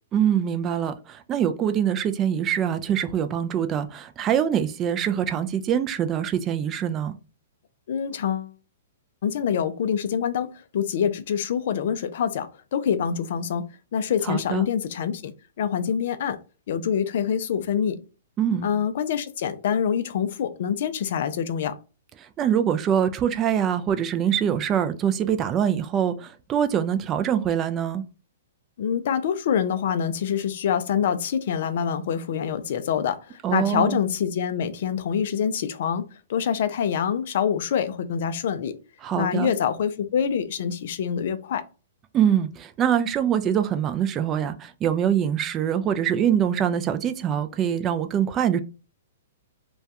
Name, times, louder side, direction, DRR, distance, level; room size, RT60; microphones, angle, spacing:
voice 1, 0.1-7.2 14.2-14.6 18.4-18.7 22.4-28.0 33.4-34.0 39.0-39.5 42.1-48.6, right 9 dB, 25° right, 0.3 m, -24 dB
voice 2, 7.9-8.5 9.2-13.6 13.9-16.4 16.7-18.0 18.6-21.8 28.8-38.7 39.1-41.6, left 8 dB, 60° left, 0.3 m, -26 dB
2.2 x 2.2 x 2.8 m
hypercardioid pair, 115°, 0 cm